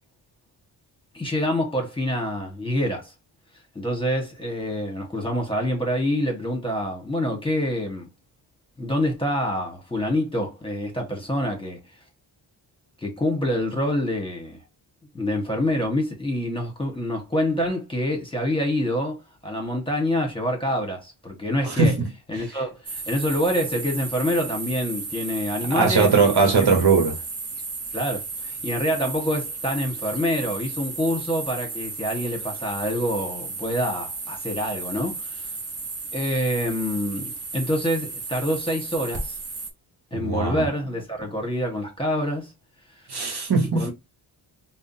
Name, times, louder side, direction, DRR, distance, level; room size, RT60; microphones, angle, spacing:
voice 1, 1.1-3.1 3.7-8.1 8.8-11.8 13.0-14.6 15.1-21.9 22.3-26.7 27.9-35.5 36.1-39.3 40.1-42.5 43.7-43.9, equal, 10° left, 1.4 m, -26 dB
voice 2, 21.6-22.1 22.4-22.5 25.6-27.2 40.1-40.7 43.1-43.9, right 4 dB, 50° right, 1.0 m, -20 dB
sound 1, 22.9-39.7, right 4 dB, 30° right, 0.8 m, -34 dB
3.6 x 2.1 x 2.7 m
cardioid pair, 60°, 50 cm